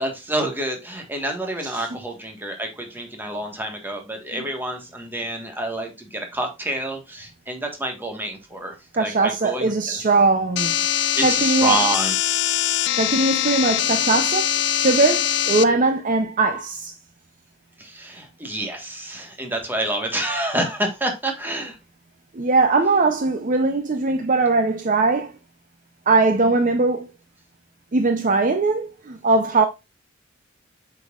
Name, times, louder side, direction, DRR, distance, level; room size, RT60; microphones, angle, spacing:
voice 1, 0.0-10.0 10.9-12.2 17.8-21.8, right 1 dB, 10° right, 1.4 m, -28 dB
voice 2, 8.9-10.8 11.2-11.8 13.0-16.9 22.4-25.3 26.1-27.1 27.9-29.6, right 3 dB, 40° right, 0.6 m, -20 dB
sound 1, 10.6-15.6, left 12 dB, 60° left, 0.4 m, -22 dB
7.9 x 5.5 x 2.4 m
head